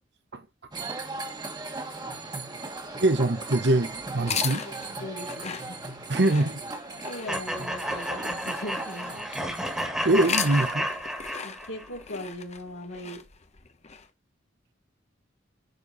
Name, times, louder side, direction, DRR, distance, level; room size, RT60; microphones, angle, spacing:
sound 1, 0.7-11.0, right 3 dB, 25° right, 1.6 m, -38 dB
voice 1, 3.0-4.6 6.1-6.6 10.0-10.9, right 2 dB, 65° right, 1.1 m, -23 dB
sound 2, 4.2-9.5 10.0-14.1, left 7 dB, 35° left, 0.9 m, -37 dB
voice 2, 4.6-5.7 7.0-9.3 11.4-13.2, left 1 dB, 80° left, 3.1 m, -39 dB
sound 3, 7.3-11.9, equal, 5° right, 1.8 m, -32 dB
10.5 x 4.6 x 4.1 m
head